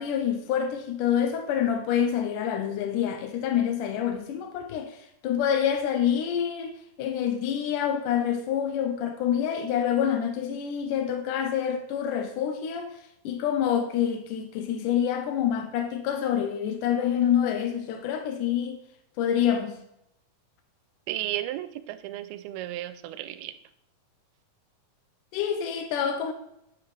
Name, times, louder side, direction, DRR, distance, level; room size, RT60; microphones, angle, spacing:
voice 1, 0.0-5.0 5.2-6.7 7.0-12.9 13.3-18.8 19.2-19.8 25.3-26.3, left 9 dB, 80° left, 1.9 m, -27 dB
voice 2, 21.1-23.5, right 14 dB, 90° right, 2.5 m, -34 dB
9.8 x 5.9 x 3.3 m
omnidirectional pair, 4.3 m